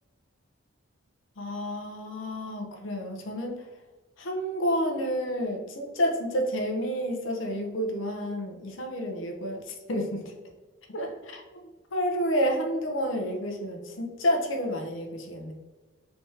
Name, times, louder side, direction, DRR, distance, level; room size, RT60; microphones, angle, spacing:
voice 1, 1.4-3.6 4.2-10.2 10.9-11.6 11.9-15.5, equal, 70° left, 2 dB, 0.7 m, -30 dB
3.4 x 3.3 x 2.7 m, 1.2 s
head